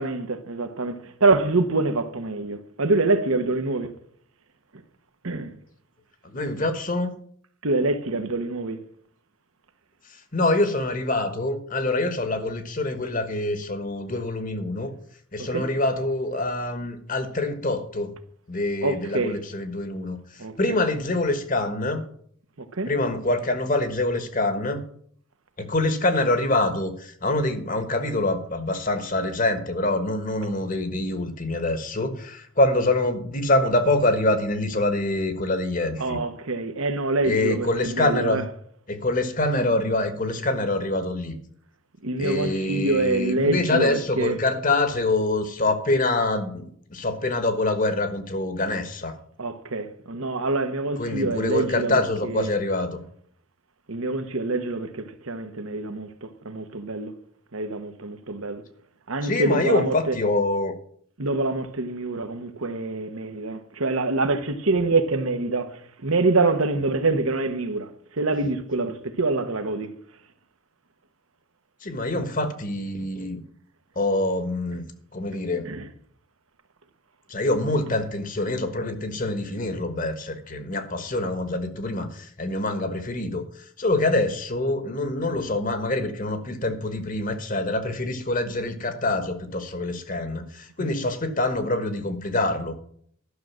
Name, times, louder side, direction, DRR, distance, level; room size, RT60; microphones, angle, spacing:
voice 1, 0.0-3.9 5.2-5.6 7.6-8.8 15.4-15.7 18.8-19.4 20.4-20.8 22.6-22.9 36.0-38.4 42.0-44.4 49.4-52.5 53.9-57.1 57.5-58.6 59.1-60.1 61.2-67.9 68.2-69.9 75.6-75.9 90.8-90.9, right 3 dB, 75° right, 1.1 m, -25 dB
voice 2, 6.2-7.1 10.1-14.9 15.3-18.1 18.5-22.0 22.9-24.8 25.6-36.2 37.2-38.4 38.9-41.4 42.2-49.2 51.0-53.0 59.2-60.7 71.8-73.4 73.9-74.8 75.1-75.7 77.3-92.8, left 2 dB, 40° left, 1.4 m, -25 dB
11.5 x 6.5 x 7.3 m
head